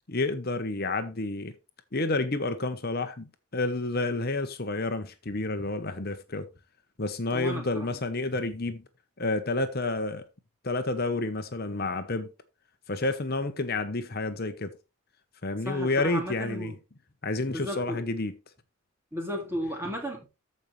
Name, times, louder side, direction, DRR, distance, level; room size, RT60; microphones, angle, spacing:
voice 1, 0.1-1.6 1.9-6.5 7.0-8.8 9.2-10.2 10.6-12.3 12.9-14.8 15.4-16.7 17.2-18.4, left 2 dB, 45° left, 0.9 m, -30 dB
voice 2, 7.3-7.9 15.7-16.8 17.5-18.0 19.1-20.3, equal, 10° right, 2.0 m, -34 dB
14.5 x 5.4 x 3.2 m
head